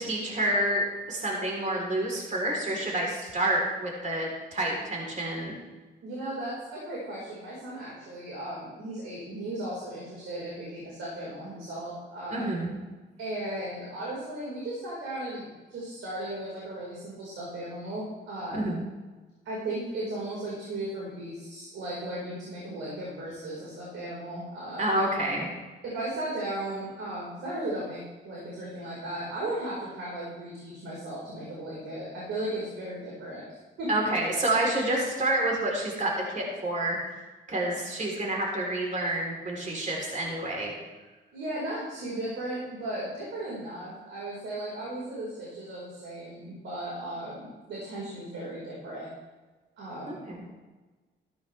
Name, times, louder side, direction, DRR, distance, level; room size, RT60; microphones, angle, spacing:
voice 1, 0.0-5.5 12.3-12.7 18.5-18.8 24.8-25.5 33.9-37.0 37.5-40.7 50.1-50.5, right 1 dB, 40° right, -1 dB, 3.8 m, -28 dB
voice 2, 6.0-12.6 13.2-18.7 19.4-25.0 25.8-33.4 33.8-33.9 41.3-49.1 49.8-50.2, right 1 dB, 75° right, -6 dB, 4.7 m, -36 dB
14.5 x 13.0 x 3.4 m, 1.3 s
cardioid pair, 90°, 20 cm